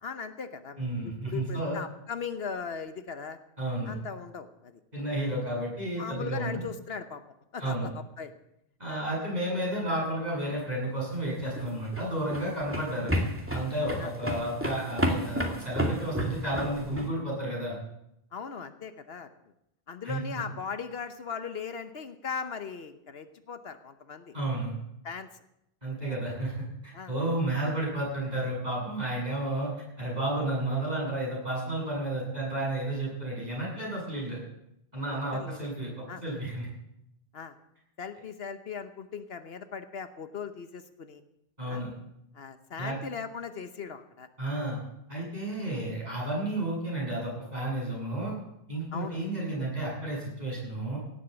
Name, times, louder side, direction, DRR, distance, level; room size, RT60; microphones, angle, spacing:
voice 1, 0.0-3.4 3.9-4.7 6.0-7.2 7.5-8.3 8.9-9.1 14.0-14.1 18.3-19.3 19.9-24.3 25.0-25.3 26.9-27.1 35.1-35.6 36.1-36.2 37.3-37.6 38.0-41.2 41.7-41.8 42.3-44.3 45.1-45.3 48.9-49.2, left 6 dB, 75° left, 10 dB, 1.2 m, -38 dB
voice 2, 0.8-1.8 3.6-3.9 4.9-6.6 7.6-7.9 8.8-13.1 13.5-17.8 20.0-20.2 24.3-24.7 25.8-26.5 26.8-29.7 30.0-34.4 34.9-35.9 36.2-36.7 41.6-41.9 42.8-43.0 44.4-44.8 45.1-48.3 48.7-51.0, right 1 dB, 40° right, -5 dB, 8.2 m, -32 dB
sound 1, 11.4-17.1, equal, 10° right, 2.3 m, -31 dB
17.5 x 8.2 x 8.2 m, 0.79 s
omnidirectional pair, 1.1 m